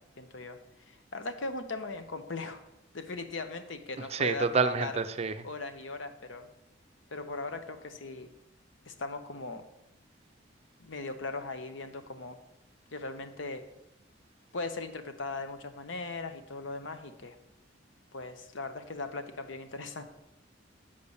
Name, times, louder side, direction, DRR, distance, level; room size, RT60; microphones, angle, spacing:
voice 1, 0.2-2.6 2.9-5.0 5.4-6.5 7.1-8.3 8.8-9.6 10.8-12.4 12.9-13.6 14.5-17.4 18.1-20.0, left 3 dB, 75° left, 8 dB, 0.9 m, -39 dB
voice 2, 4.1-5.4, right 5 dB, 35° right, 10 dB, 0.4 m, -28 dB
6.7 x 5.3 x 7.0 m, 0.88 s
head